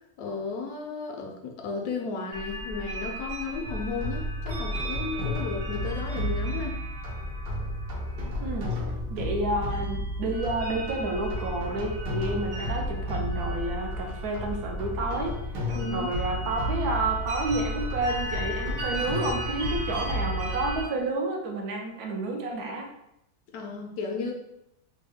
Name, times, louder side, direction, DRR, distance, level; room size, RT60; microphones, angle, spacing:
voice 1, 0.2-6.8 15.7-16.1 23.5-24.3, left 4 dB, 70° left, 1 dB, 1.0 m, -34 dB
sound 1, 2.3-20.8, right 1 dB, 50° right, 0.7 m, -37 dB
sound 2, 3.6-20.8, left 1 dB, 90° right, 1.5 m, -33 dB
voice 2, 9.1-15.4 15.9-22.9, right 2 dB, 75° right, 1 dB, 1.1 m, -30 dB
3.5 x 2.2 x 3.5 m, 0.81 s
omnidirectional pair, 1.7 m